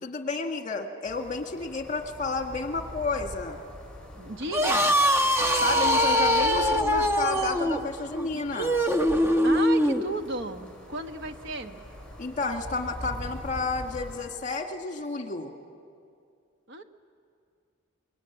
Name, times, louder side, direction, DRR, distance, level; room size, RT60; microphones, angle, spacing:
voice 1, 0.0-3.6 5.5-8.8 12.2-15.5, left 3 dB, 40° left, 4 dB, 1.9 m, -31 dB
sound 1, 1.0-14.3, left 1 dB, 5° left, 4.4 m, -43 dB
voice 2, 4.2-5.0 9.4-11.8 16.7-16.8, right 2 dB, 65° right, 7 dB, 1.3 m, -34 dB
sound 2, 4.4-10.1, equal, 15° right, 1.0 m, -23 dB
26.0 x 22.5 x 9.5 m, 2.3 s
head